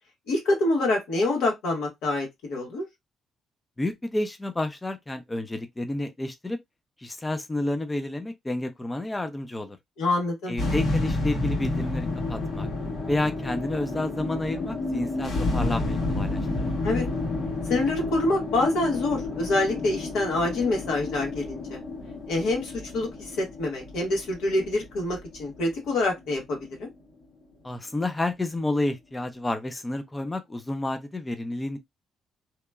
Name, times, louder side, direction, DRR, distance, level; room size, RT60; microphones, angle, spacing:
voice 1, 0.3-2.9 10.0-10.6 16.8-17.0 17.7-21.8 22.3-26.9, left 2 dB, 85° left, 1.2 m, -26 dB
voice 2, 3.8-6.6 7.0-9.8 10.5-12.7 13.1-16.7 27.6-31.8, left 2 dB, 15° left, 0.4 m, -30 dB
sound 1, 10.6-27.0, left 2 dB, 70° left, 1.4 m, -30 dB
2.9 x 2.2 x 2.2 m
cardioid pair, 90°, 0 cm